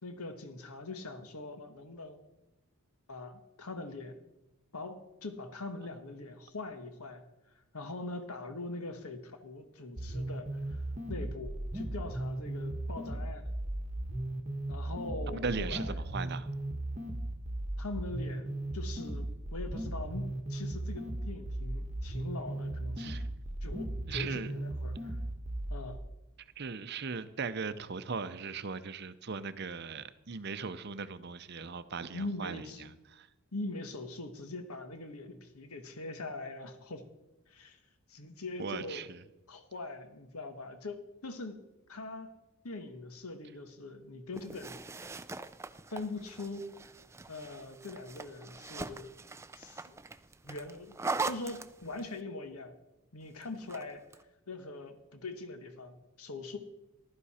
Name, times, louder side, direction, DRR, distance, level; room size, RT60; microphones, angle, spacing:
voice 1, 0.0-2.2 3.1-4.2 4.7-7.2 7.7-10.8 11.1-13.5 14.7-16.0 17.8-18.5 18.7-23.2 23.6-25.2 25.7-26.0 32.1-33.0 33.5-37.1 37.5-37.8 38.1-39.0 39.5-41.6 41.9-42.4 42.6-44.8 45.9-46.7 47.3-49.1 49.5-50.0 50.4-51.0 51.2-52.7 53.1-54.0 54.5-56.6, left 2 dB, 85° left, 1.3 m, -42 dB
sound 1, 10.0-26.0, right 1 dB, 30° right, 1.2 m, -37 dB
voice 2, 15.3-16.5 23.0-23.2 24.1-24.5 26.6-33.3 38.6-39.2, right 5 dB, 50° right, 0.6 m, -38 dB
sound 2, 44.3-52.2 53.4-54.2, right 3 dB, 10° right, 0.3 m, -41 dB
15.0 x 12.0 x 4.3 m
head